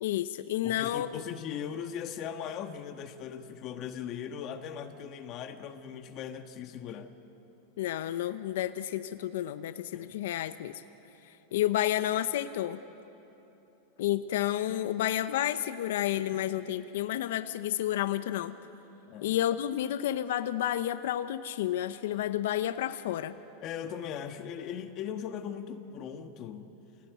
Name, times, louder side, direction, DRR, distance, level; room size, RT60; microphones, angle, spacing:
voice 1, 0.0-1.2 7.8-10.7 11.5-12.8 14.0-18.6 19.2-23.4, left 12 dB, 75° left, 11 dB, 0.8 m, -30 dB
voice 2, 0.6-7.1 9.9-10.1 19.1-19.4 23.6-26.7, left 8 dB, 40° left, 7 dB, 1.4 m, -39 dB
27.0 x 17.5 x 9.4 m, 3.0 s
supercardioid pair, 135°, 0 cm